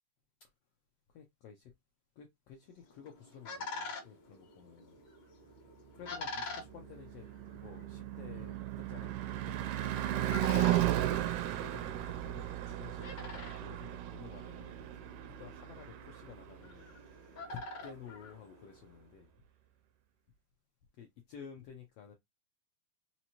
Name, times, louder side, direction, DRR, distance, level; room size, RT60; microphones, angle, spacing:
voice 1, 1.1-1.7 2.2-5.0 5.4-5.6 5.9-7.3 7.5-8.6 8.9-9.1 9.4-10.1 10.6-11.3 11.6-19.3 20.9-22.1, left 7 dB, 80° left, 1.4 m, -52 dB
sound 1, 2.8-19.0, left 3 dB, 50° left, 1.3 m, -47 dB
Car passing by / Truck / Engine, 6.5-16.8, right 14 dB, 80° right, 1.7 m, -35 dB
5.2 x 2.9 x 2.9 m
omnidirectional pair, 3.8 m